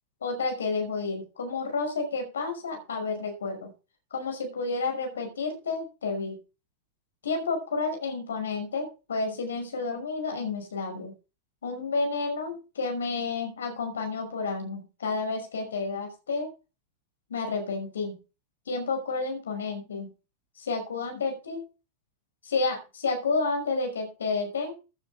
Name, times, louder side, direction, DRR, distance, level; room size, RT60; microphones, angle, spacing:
voice 1, 0.2-3.7 4.1-6.4 7.2-11.1 11.6-16.5 17.3-18.1 18.7-20.1 20.6-21.6 22.4-24.7, left 3 dB, 65° left, 4 dB, 5.7 m, -30 dB
15.0 x 9.9 x 3.6 m, 0.31 s
figure-of-eight pair, 90°, 0 cm